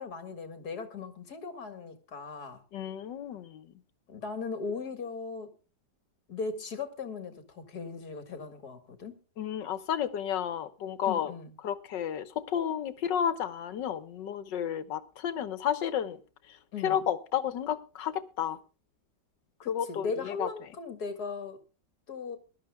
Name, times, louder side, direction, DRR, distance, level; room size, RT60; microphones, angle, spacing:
voice 1, 0.0-2.6 4.1-5.5 6.3-9.1 11.0-11.5 16.7-17.0 19.6-21.6 22.1-22.4, left 4 dB, 60° left, 2.3 m, -38 dB
voice 2, 2.7-3.7 9.4-11.3 11.6-16.2 16.5-16.6 16.8-18.6 19.7-20.5, left 9 dB, 85° left, 1.7 m, -32 dB
23.0 x 12.0 x 2.2 m
omnidirectional pair, 1.9 m